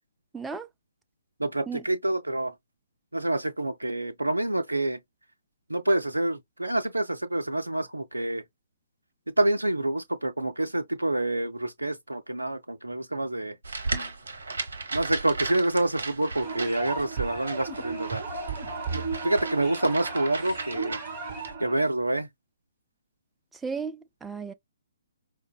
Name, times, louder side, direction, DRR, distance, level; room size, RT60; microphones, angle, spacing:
voice 1, 0.3-0.7 1.7-1.8 23.6-24.5, right 5 dB, 5° right, 0.3 m, -34 dB
voice 2, 1.4-2.5 3.1-5.0 5.7-8.4 9.3-13.6 14.9-18.2 18.9-21.0 21.6-22.3, right 1 dB, 80° right, 0.4 m, -27 dB
sound 1, 13.6-21.5, right 3 dB, 60° right, 0.8 m, -36 dB
sound 2, 16.4-21.7, right 4 dB, 25° right, 1.3 m, -35 dB
4.7 x 2.0 x 2.2 m
figure-of-eight pair, 130°, 0 cm